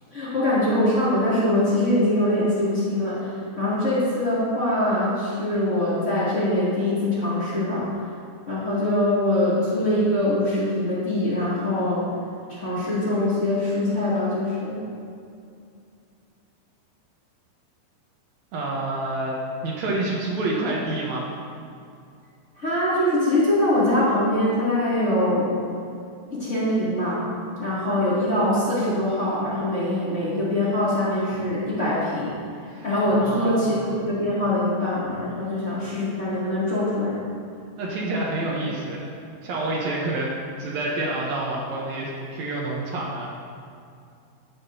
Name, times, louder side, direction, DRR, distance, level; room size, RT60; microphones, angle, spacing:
voice 1, 0.1-7.9 8.5-12.1 12.5-14.8 22.5-25.5 26.3-27.3 27.6-32.4 32.8-37.2, left 1 dB, 25° left, -11 dB, 1.9 m, -23 dB
voice 2, 18.5-19.4 19.6-21.3 32.7-32.8 33.1-33.7 37.8-39.1 39.4-43.3, right 2 dB, 85° right, -4 dB, 1.6 m, -28 dB
17.0 x 5.8 x 2.7 m, 2.4 s
omnidirectional pair, 4.6 m